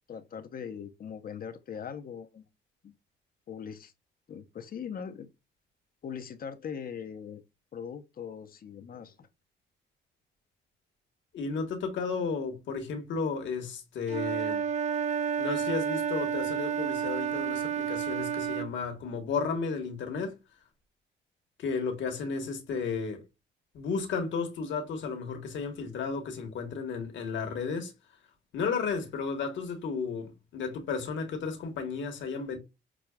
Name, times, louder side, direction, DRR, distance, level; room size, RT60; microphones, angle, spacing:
voice 1, 0.0-2.5 2.8-2.9 3.5-3.9 4.3-5.3 6.0-7.4 7.7-9.3, left 7 dB, 50° left, 0.7 m, -41 dB
voice 2, 11.3-14.6 15.4-20.3 21.6-23.2 23.7-27.9 28.5-32.6, left 5 dB, 70° left, 1.2 m, -33 dB
Wind instrument woodwind instrument, 14.1-18.7, right 8 dB, 35° right, 0.4 m, -30 dB
6.0 x 2.3 x 2.2 m
cardioid pair, 90°, 20 cm